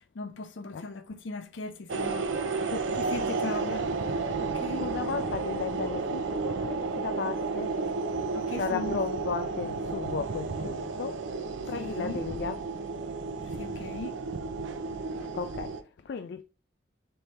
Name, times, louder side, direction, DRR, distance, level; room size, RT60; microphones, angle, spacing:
voice 1, 0.1-2.3 3.0-3.8 4.4-4.9 8.3-9.0 11.6-12.2 13.5-14.2, left 2 dB, 85° left, 0.7 m, -39 dB
sound 1, 1.9-15.8, right 4 dB, 85° right, 0.5 m, -32 dB
voice 2, 2.5-3.0 3.4-3.8 4.8-7.8 8.6-11.2 11.7-12.7 14.8-16.4, left 6 dB, 60° left, 0.3 m, -35 dB
3.3 x 3.3 x 4.2 m
head